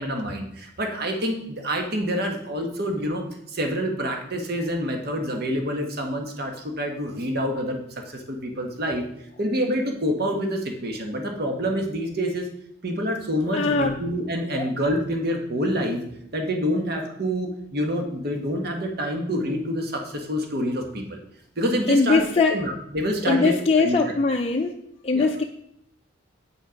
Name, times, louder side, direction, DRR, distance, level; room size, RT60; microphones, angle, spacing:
voice 1, 0.0-7.8 8.0-9.0 9.4-12.5 12.8-16.0 16.3-21.2 21.6-22.2 22.5-24.1 25.1-25.2, equal, 55° right, 3 dB, 1.4 m, -27 dB
voice 2, 13.5-13.9 14.5-14.6 21.9-22.6 23.2-24.7 25.0-25.4, left 4 dB, 30° left, 1 dB, 0.5 m, -21 dB
8.5 x 6.2 x 5.2 m, 0.73 s
head